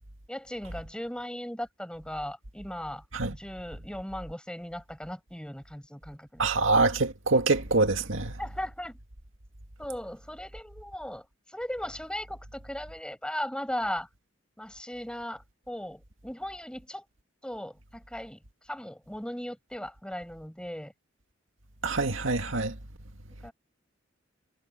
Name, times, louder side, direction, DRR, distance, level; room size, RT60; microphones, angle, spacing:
voice 1, 0.3-3.0 3.3-6.5 8.4-9.0 9.8-11.2 11.5-14.1 14.6-17.0 17.4-18.4 18.7-20.9 23.4-23.5, left 1 dB, 5° left, 6.3 m, -37 dB
voice 2, 6.4-8.3 21.8-22.7, right 3 dB, 85° right, 2.0 m, -25 dB
head